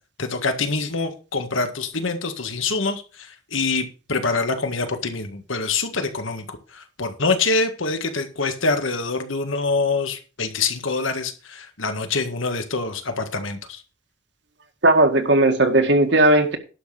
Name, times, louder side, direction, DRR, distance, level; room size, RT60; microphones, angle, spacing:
voice 1, 0.2-13.8, left 3 dB, 85° left, 1.8 m, -25 dB
voice 2, 14.8-16.6, right 2 dB, 60° right, 1.9 m, -16 dB
11.5 x 6.1 x 6.7 m
head